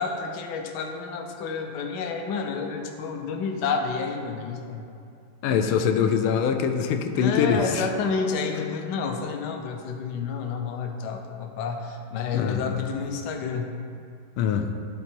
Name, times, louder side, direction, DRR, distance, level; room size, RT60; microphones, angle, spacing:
voice 1, 0.0-4.9 7.1-13.7, left 5 dB, 65° left, 3 dB, 1.2 m, -30 dB
voice 2, 5.4-7.8 12.3-12.7 14.4-14.7, left 7 dB, 90° left, 6 dB, 1.5 m, -23 dB
12.0 x 4.1 x 4.4 m, 2.5 s
omnidirectional pair, 2.3 m